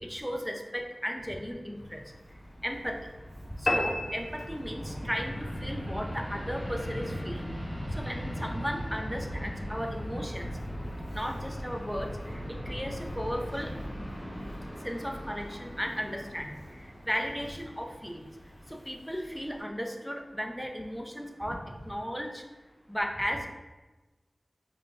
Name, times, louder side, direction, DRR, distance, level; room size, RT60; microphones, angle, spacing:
voice 1, 0.0-2.0 2.6-3.0 3.6-7.4 8.0-10.5 11.1-12.1 12.7-13.7 14.8-16.5 17.1-18.2 18.9-21.6 21.8-22.4 22.9-23.5, equal, ahead, 3 dB, 0.4 m, -35 dB
Fixed-wing aircraft airplane, 1.8-19.6, equal, 35° left, 1.0 m, -39 dB
sound 1, 3.7-5.2, left 1 dB, 60° left, 0.4 m, -31 dB
4.9 x 2.3 x 2.4 m, 1.2 s
wide cardioid pair, 55°, 0 cm